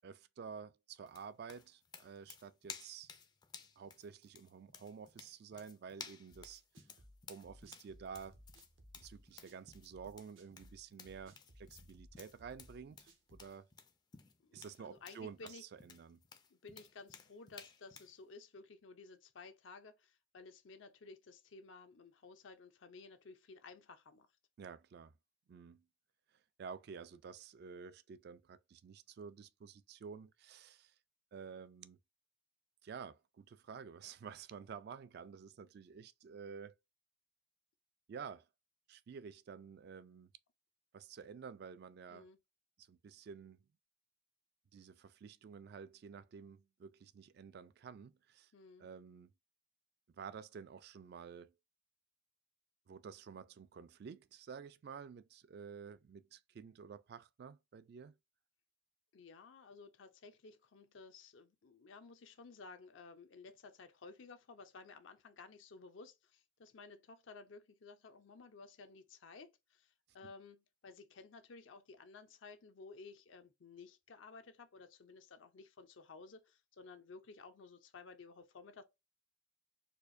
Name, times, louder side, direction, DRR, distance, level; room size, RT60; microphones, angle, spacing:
voice 1, 0.0-3.1 3.8-6.6 7.3-8.4 9.0-13.7 14.5-16.2 24.6-25.1 25.5-25.8 26.6-30.9 31.3-32.0 32.8-36.8 38.1-38.5 38.9-40.3 40.9-42.3 42.8-43.6 44.7-48.5 48.8-49.3 50.2-51.5 52.9-58.1, right 6 dB, 55° right, 0.3 m, -51 dB
sound 1, 1.1-18.2, left 6 dB, 20° left, 0.4 m, -55 dB
sound 2, 6.3-13.5, equal, 80° right, 0.9 m, -61 dB
voice 2, 14.4-15.6 16.5-24.3 42.1-42.4 48.5-48.9 59.1-78.8, left 4 dB, 75° left, 0.5 m, -55 dB
4.3 x 2.5 x 2.5 m
head